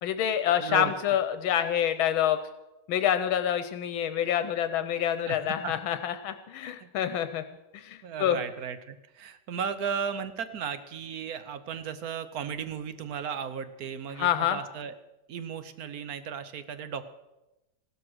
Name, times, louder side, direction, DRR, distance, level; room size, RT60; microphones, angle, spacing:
voice 1, 0.0-2.4 2.9-7.4 7.7-8.4 14.1-14.6, left 10 dB, 80° left, 10 dB, 1.5 m, -27 dB
voice 2, 0.6-0.9 5.2-5.4 5.6-5.7 6.6-6.9 8.0-14.9 15.3-17.1, right 7 dB, 60° right, 12 dB, 1.1 m, -35 dB
15.5 x 12.5 x 6.2 m, 0.99 s
omnidirectional pair, 2.2 m